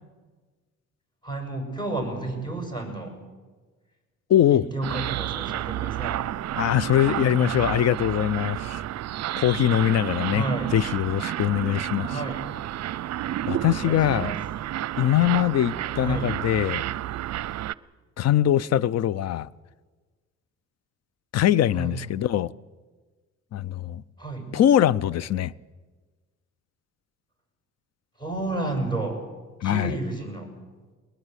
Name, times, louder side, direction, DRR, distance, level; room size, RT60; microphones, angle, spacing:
voice 1, 1.2-3.2 4.5-6.3 10.3-10.7 12.1-12.4 13.7-14.4 16.0-16.3 21.7-22.0 24.2-24.5 28.2-29.2 29.6-30.5, right 2 dB, 15° left, 6.9 m, -31 dB
voice 2, 4.3-4.6 6.6-8.8 9.4-10.4 10.7-12.2 13.5-14.3 15.0-16.8 18.2-19.5 21.3-22.5 23.5-24.0 24.5-25.5 29.6-29.9, left 11 dB, 60° left, 0.6 m, -22 dB
sound 1, 4.8-17.7, right 13 dB, 60° right, 0.6 m, -31 dB
21.0 x 20.5 x 8.2 m
cardioid pair, 90°, 30 cm